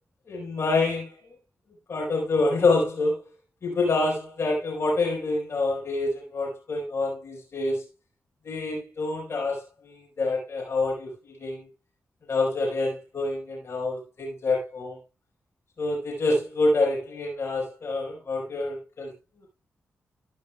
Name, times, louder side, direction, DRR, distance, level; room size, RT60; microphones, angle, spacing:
voice 1, 0.3-1.1 1.9-3.2 3.6-7.9 8.4-11.7 12.3-15.0 15.8-19.1, left 2 dB, 55° left, 4.8 m, -27 dB
12.5 x 11.5 x 2.3 m
supercardioid pair, 45°, 5 cm